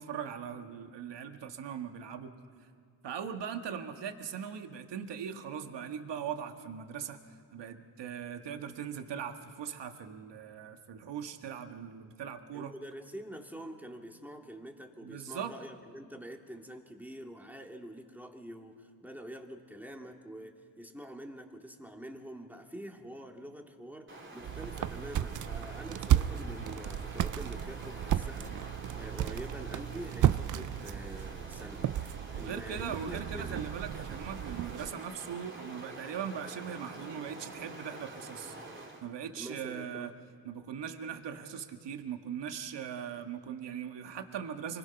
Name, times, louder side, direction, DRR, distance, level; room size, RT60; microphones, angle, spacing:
voice 1, 0.0-2.3 3.0-7.2 7.5-12.7 15.0-15.5 32.3-38.7 39.0-40.1 40.5-44.8, right 8 dB, 60° right, 6 dB, 1.8 m, -40 dB
voice 2, 12.5-33.7 39.4-40.1, right 1 dB, 5° right, 2 dB, 2.5 m, -46 dB
Stream, 24.1-39.1, right 2 dB, 25° right, 3.2 m, -47 dB
sound 1, 24.4-35.0, right 11 dB, 40° right, 0.5 m, -33 dB
25.5 x 20.5 x 5.9 m, 2.2 s
supercardioid pair, 75°, 49 cm